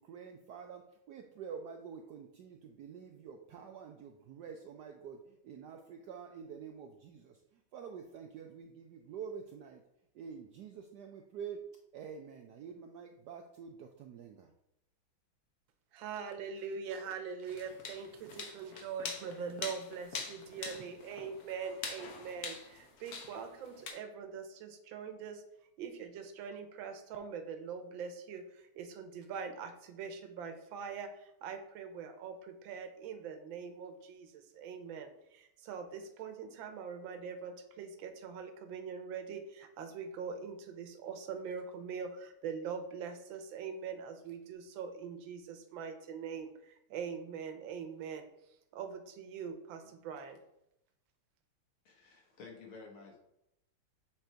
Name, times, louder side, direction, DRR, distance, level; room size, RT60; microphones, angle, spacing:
voice 1, 0.0-9.8 10.1-11.6 11.9-14.5, right 7 dB, 85° right, 4 dB, 0.9 m, -47 dB
voice 2, 15.9-25.4 25.8-48.3 48.7-50.4, right 6 dB, 70° right, 7 dB, 1.4 m, -43 dB
sound 1, 17.5-23.9, left 4 dB, 55° left, 1.2 m, -44 dB
voice 3, 51.9-53.2, left 4 dB, 75° left, 0 dB, 2.1 m, -52 dB
7.3 x 3.3 x 4.4 m, 0.81 s
omnidirectional pair, 2.4 m